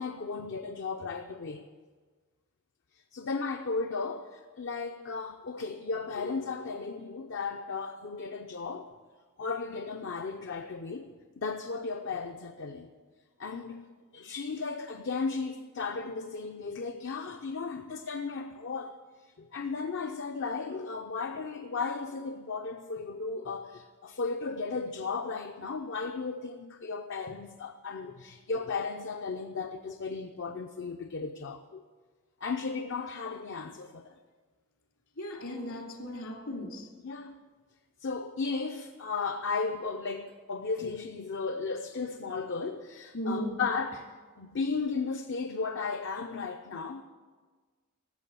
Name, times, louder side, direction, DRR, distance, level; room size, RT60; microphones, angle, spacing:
voice 1, 0.0-1.6 2.9-8.9 9.4-12.9 13.4-13.8 14.1-31.8 32.4-34.1 37.0-37.4 38.0-47.0, left 4 dB, 55° left, 5 dB, 0.6 m, -35 dB
voice 2, 35.2-36.9 43.1-43.6, equal, 75° left, 1 dB, 2.8 m, -36 dB
13.0 x 7.5 x 8.3 m, 1.4 s
head